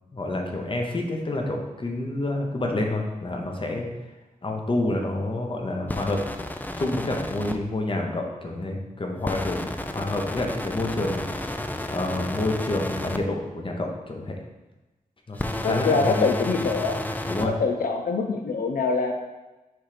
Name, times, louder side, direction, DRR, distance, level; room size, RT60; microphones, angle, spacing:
voice 1, 0.1-3.9 4.4-6.2 6.8-11.2 11.5-11.6 11.9-14.4 15.3-16.3 17.3-17.5, left 2 dB, 35° left, 2 dB, 0.8 m, -28 dB
sound 1, 5.9-7.6 9.2-13.2 15.3-17.5, left 1 dB, 10° left, 0.4 m, -32 dB
voice 2, 15.6-17.0 17.4-19.1, left 4 dB, 85° left, 3 dB, 0.5 m, -24 dB
6.2 x 3.2 x 5.0 m, 1.1 s
wide cardioid pair, 120°, 14 cm